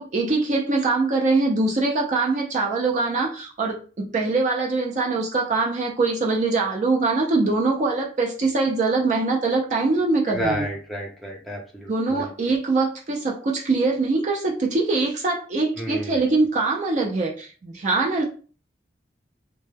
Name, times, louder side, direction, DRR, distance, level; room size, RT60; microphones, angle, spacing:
voice 1, 0.0-10.7 11.9-18.2, right 3 dB, 40° right, -1 dB, 0.4 m, -23 dB
voice 2, 10.3-12.3 15.8-16.3, right 1 dB, ahead, -2 dB, 0.6 m, -31 dB
2.1 x 2.1 x 3.2 m, 0.39 s
head